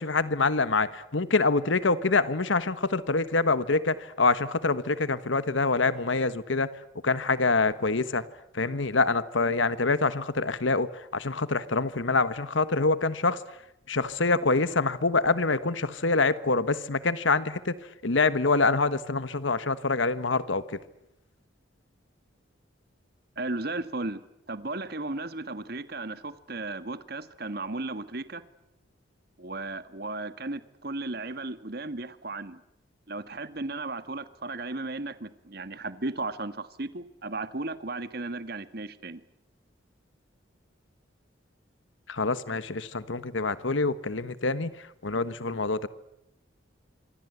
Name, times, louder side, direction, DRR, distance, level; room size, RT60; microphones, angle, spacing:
voice 1, 0.0-6.7 7.0-8.2 8.5-10.9 11.1-13.4 13.9-17.7 18.0-20.6 42.1-44.7 45.0-45.9, left 3 dB, 80° left, 14 dB, 1.3 m, -25 dB
voice 2, 23.4-24.2 24.5-28.4 29.4-32.6 33.1-39.2, right 2 dB, 55° right, 12 dB, 1.7 m, -35 dB
26.5 x 25.0 x 8.2 m, 0.83 s
head